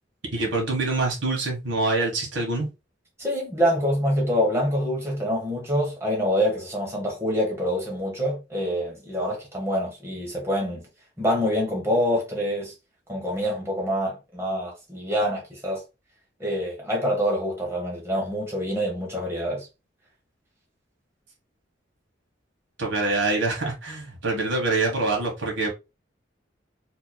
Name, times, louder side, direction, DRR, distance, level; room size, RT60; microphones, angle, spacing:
voice 1, 0.2-2.7 22.8-25.7, right 3 dB, 85° right, 1.6 m, -25 dB
voice 2, 3.2-10.8 11.2-12.7 13.1-15.8 16.4-19.7, equal, 15° right, 1.4 m, -26 dB
4.5 x 3.1 x 2.2 m
head